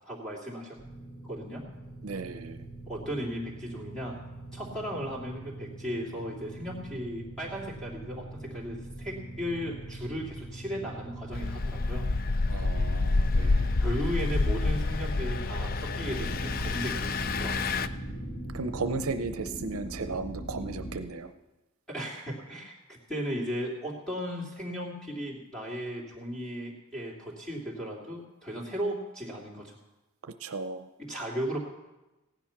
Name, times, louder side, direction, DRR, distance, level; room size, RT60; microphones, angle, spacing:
voice 1, 0.0-0.8 1.2-1.6 2.9-4.2 4.5-12.1 13.8-17.6 21.9-29.8 31.0-31.6, equal, 5° left, -6 dB, 2.8 m, -36 dB
sound 1, 0.8-19.0, right 2 dB, 25° left, 4.0 m, -42 dB
voice 2, 2.0-2.6 12.5-13.7 18.5-21.3 30.4-30.9, right 4 dB, 70° right, 10 dB, 0.6 m, -35 dB
Engine, 11.3-17.9, left 3 dB, 40° left, 0.4 m, -28 dB
sound 2, 16.0-21.0, equal, 85° left, 2.9 m, -40 dB
15.5 x 10.0 x 5.9 m, 1.1 s
head